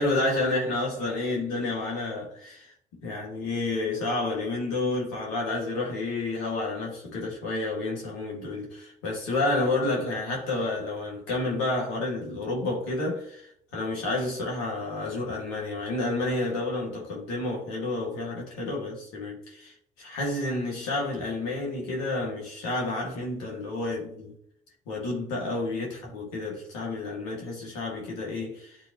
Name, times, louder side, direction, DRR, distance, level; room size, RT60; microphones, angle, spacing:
voice 1, 0.0-2.7 3.0-24.3 24.9-28.8, left 2 dB, 85° left, 2.3 m, -30 dB
9.7 x 4.1 x 3.1 m
hypercardioid pair, 55°, 19 cm